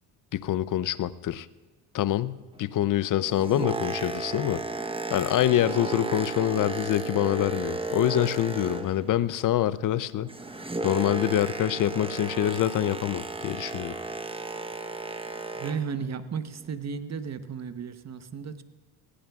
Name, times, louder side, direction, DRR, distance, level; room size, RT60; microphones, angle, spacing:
voice 1, 0.3-1.5 1.9-4.6 5.1-10.3 10.8-13.9, left 12 dB, 45° left, 17 dB, 0.6 m, -26 dB
Boat Water vehicle, 3.1-9.2 9.5-16.0 16.6-16.7, right 3 dB, 10° right, 1.0 m, -34 dB
voice 2, 15.5-18.6, right 6 dB, 35° right, 10 dB, 1.0 m, -34 dB
19.5 x 16.5 x 2.4 m, 1.4 s
supercardioid pair, 75°, 45 cm